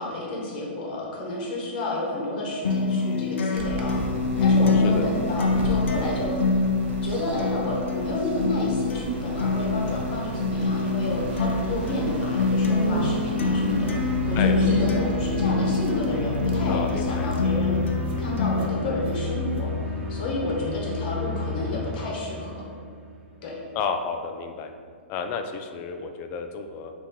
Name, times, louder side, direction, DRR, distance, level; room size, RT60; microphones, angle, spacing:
voice 1, 0.0-6.3 7.0-17.8 18.2-19.7 20.1-22.6 23.4-23.5, left 2 dB, 50° left, -2 dB, 1.1 m, -30 dB
Acoustic guitar, 2.6-18.7, left 4 dB, 80° left, 0.6 m, -26 dB
sound 1, 3.5-20.7, right 2 dB, 65° right, 0.7 m, -34 dB
voice 2, 4.7-5.1 14.3-14.9 16.7-17.3 23.7-24.7 25.1-26.9, left 5 dB, 30° left, 6 dB, 0.3 m, -31 dB
sound 2, 13.4-23.5, left 1 dB, 85° right, 1.2 m, -30 dB
3.8 x 2.9 x 4.4 m, 2.1 s
hypercardioid pair, 145°, 6 cm